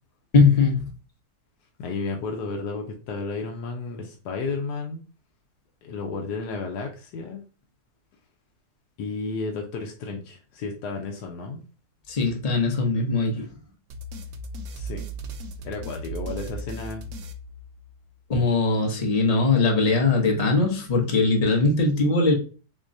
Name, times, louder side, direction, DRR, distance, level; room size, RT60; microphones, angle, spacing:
voice 1, 0.3-0.8 12.1-13.5 18.3-22.3, left 3 dB, 40° left, 0.6 m, -21 dB
voice 2, 1.8-5.0 5.8-7.4 9.0-11.6 14.7-15.0 15.6-17.0, left 4 dB, 90° left, 1.2 m, -32 dB
sound 1, 13.9-18.2, right 2 dB, 70° right, 0.7 m, -37 dB
3.6 x 3.1 x 2.6 m
omnidirectional pair, 1.7 m